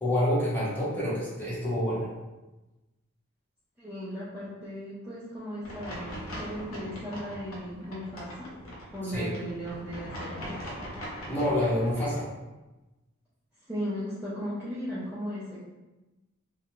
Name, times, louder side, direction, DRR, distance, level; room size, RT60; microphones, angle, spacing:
voice 1, 0.0-2.1 9.1-9.3 11.3-12.3, left 1 dB, 10° left, -9 dB, 0.8 m, -27 dB
voice 2, 3.8-8.5 8.9-10.6 13.7-15.6, equal, 5° right, -12 dB, 0.4 m, -36 dB
sound 1, 5.6-12.2, equal, 70° left, 0.7 m, -41 dB
2.4 x 2.1 x 3.0 m, 1.1 s
head